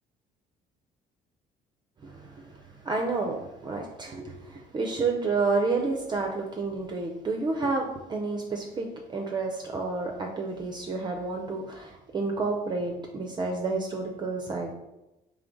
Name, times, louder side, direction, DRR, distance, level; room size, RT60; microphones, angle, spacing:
voice 1, 2.0-2.6 2.8-14.7, right 3 dB, 25° right, 2 dB, 0.4 m, -30 dB
3.6 x 3.2 x 3.8 m, 0.97 s
cardioid pair, 110°, 17 cm